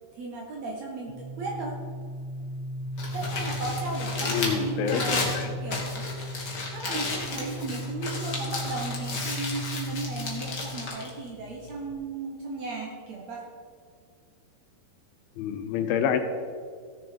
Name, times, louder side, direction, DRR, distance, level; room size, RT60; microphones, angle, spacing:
voice 1, 0.1-1.8 3.1-6.1 6.7-13.5, right 3 dB, 65° right, -1 dB, 1.8 m, -35 dB
sound 1, 1.1-10.9, equal, 55° left, 1.6 m, -36 dB
Crumpling crinkling, 2.8-11.9, left 3 dB, 40° left, 1.6 m, -34 dB
voice 2, 4.3-5.5 15.4-16.2, left 8 dB, 80° left, 8 dB, 2.3 m, -27 dB
16.5 x 6.9 x 5.2 m, 2.1 s
omnidirectional pair, 4.5 m